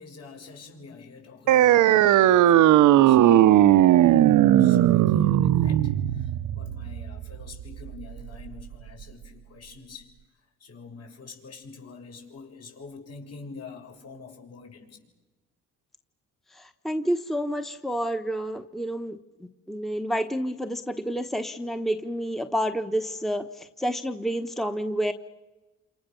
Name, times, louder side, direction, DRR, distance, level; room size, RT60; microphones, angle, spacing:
voice 1, 0.0-10.1 10.6-15.0, left 4 dB, 55° left, 2 dB, 7.5 m, -46 dB
sound 1, 1.5-8.5, right 12 dB, 80° right, 0.9 m, -18 dB
voice 2, 16.5-19.2 19.7-25.1, equal, ahead, 8 dB, 1.1 m, -29 dB
28.5 x 27.5 x 7.0 m, 1.1 s
cardioid pair, 90°, 30 cm